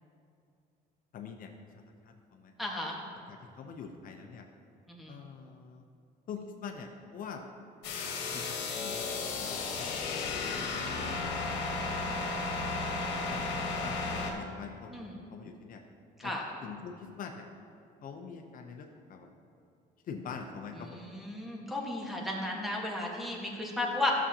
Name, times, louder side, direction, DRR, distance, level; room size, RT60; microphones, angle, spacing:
voice 1, 1.1-1.5 2.0-2.5 3.3-4.4 5.1-5.9 6.3-7.4 8.3-9.1 9.4-11.0 13.3-15.8 16.2-16.3 16.6-17.5 18.0-19.3 20.0-21.1, left 6 dB, 55° left, 3 dB, 0.7 m, -45 dB
voice 2, 2.6-2.9 4.9-5.2 14.9-15.2 16.2-16.4 20.8-24.2, left 1 dB, ahead, -2 dB, 1.4 m, -34 dB
sound 1, 7.8-14.3, left 3 dB, 90° left, 1.2 m, -34 dB
12.5 x 7.1 x 2.8 m, 2.4 s
cardioid pair, 110°, 17 cm